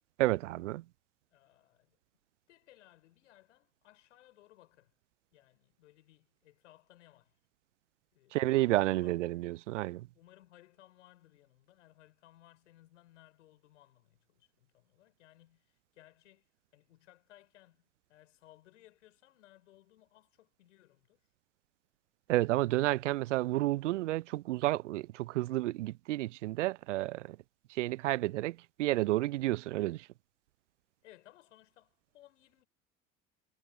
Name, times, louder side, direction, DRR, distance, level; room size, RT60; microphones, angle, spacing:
voice 1, 0.2-0.8 8.3-10.1 22.3-27.4 27.7-30.1, right 17 dB, 65° right, 0.8 m, -31 dB
voice 2, 1.3-2.0 2.5-4.9 5.3-7.4 8.1-9.5 10.1-21.3 22.8-23.1 31.0-32.7, left 15 dB, 70° left, 7.5 m, -62 dB
figure-of-eight pair, 65°, 39 cm